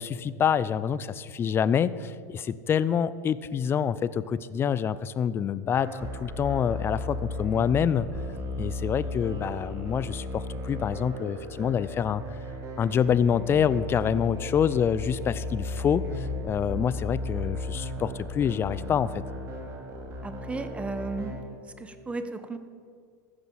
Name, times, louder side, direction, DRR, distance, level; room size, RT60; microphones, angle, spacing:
voice 1, 0.0-8.1 8.6-12.2 12.8-19.2, left 8 dB, 25° left, 16 dB, 0.5 m, -26 dB
sound 1, 5.8-21.4, left 2 dB, 30° right, 2.2 m, -35 dB
voice 2, 20.2-21.4 21.8-22.6, right 3 dB, 10° right, 10 dB, 0.9 m, -35 dB
14.5 x 6.0 x 7.3 m, 2.1 s
hypercardioid pair, 115°, 9 cm